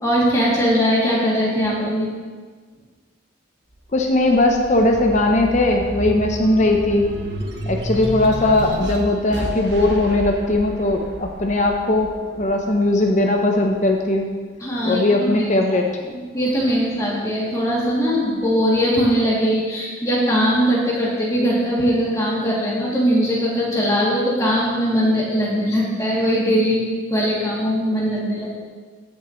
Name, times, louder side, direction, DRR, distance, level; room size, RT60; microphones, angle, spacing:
voice 1, 0.0-2.1 14.6-28.6, equal, 15° left, -7 dB, 2.6 m, -20 dB
sound 1, 3.7-14.5 15.0-16.2, right 1 dB, 60° right, 1.1 m, -32 dB
voice 2, 3.9-7.1 7.6-14.3 14.8-15.8, left 2 dB, 35° left, 2 dB, 0.7 m, -19 dB
15.0 x 7.0 x 3.1 m, 1.5 s
head